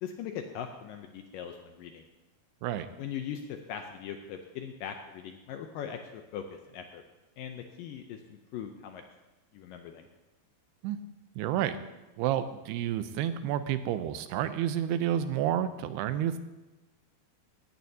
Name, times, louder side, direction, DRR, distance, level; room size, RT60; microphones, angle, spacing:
voice 1, 0.0-2.1 3.0-7.0 7.4-9.0 9.5-10.1, left 8 dB, 80° left, 5 dB, 2.0 m, -40 dB
voice 2, 11.4-11.8 12.2-16.4, right 10 dB, 85° right, 11 dB, 2.7 m, -30 dB
17.5 x 13.5 x 2.8 m, 1.1 s
omnidirectional pair, 4.6 m